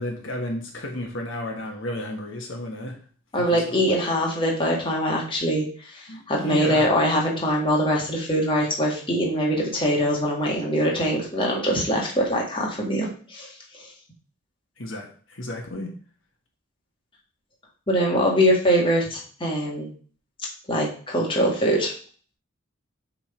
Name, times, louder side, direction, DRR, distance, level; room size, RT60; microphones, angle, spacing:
voice 1, 0.0-3.0 3.4-4.0 6.1-6.8 14.8-15.9, left 1 dB, 70° left, 1 dB, 1.5 m, -33 dB
voice 2, 3.3-13.5 17.9-19.9 20.7-21.9, equal, 25° left, -2 dB, 1.8 m, -23 dB
7.4 x 3.9 x 5.0 m, 0.43 s
head